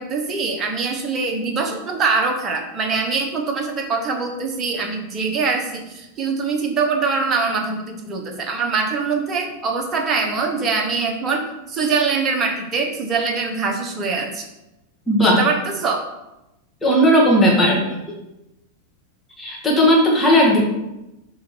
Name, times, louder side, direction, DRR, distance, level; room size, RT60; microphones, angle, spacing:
voice 1, 0.0-14.5 15.4-16.1, right 4 dB, 25° right, 3 dB, 1.0 m, -23 dB
voice 2, 15.1-15.4 16.8-17.8 19.4-20.7, equal, 10° left, -3 dB, 1.7 m, -15 dB
6.3 x 3.9 x 4.4 m, 0.93 s
figure-of-eight pair, 90°, 0 cm